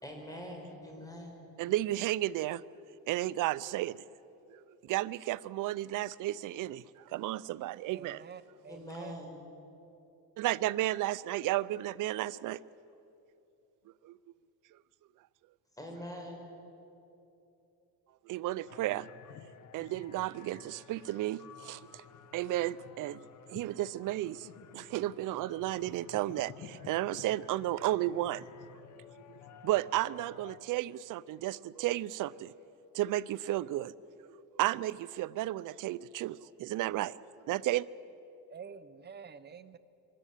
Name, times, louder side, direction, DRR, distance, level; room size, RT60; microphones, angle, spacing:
voice 1, 0.0-1.5 8.7-9.4 15.8-16.5, equal, 10° left, 1 dB, 5.1 m, -44 dB
voice 2, 1.6-2.6 3.1-4.0 4.9-6.8 7.1-8.2 10.4-12.6 18.3-19.1 19.7-21.8 22.3-23.2 23.5-24.5 24.7-28.5 29.6-32.5 32.9-33.9 34.6-37.2 37.5-37.8, right 15 dB, 55° right, 18 dB, 0.6 m, -33 dB
voice 3, 7.9-9.2 38.5-39.8, right 6 dB, 25° right, 13 dB, 0.9 m, -48 dB
sound 1, 18.7-30.6, left 8 dB, 50° left, 1.1 m, -53 dB
24.0 x 13.5 x 10.0 m, 2.8 s
cardioid pair, 115°, 37 cm